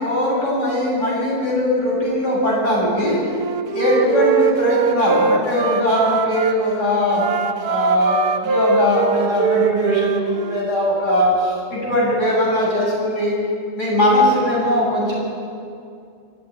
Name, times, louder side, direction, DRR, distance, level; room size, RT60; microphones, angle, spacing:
voice 1, 0.0-3.2 3.8-7.3 7.7-13.3 13.7-15.1, left 1 dB, 50° left, -5 dB, 8.1 m, -19 dB
Wind instrument woodwind instrument, 3.3-6.5 7.1-10.7, right 6 dB, 90° right, 1.4 m, -22 dB
27.0 x 10.5 x 9.7 m, 2.4 s
omnidirectional pair, 1.6 m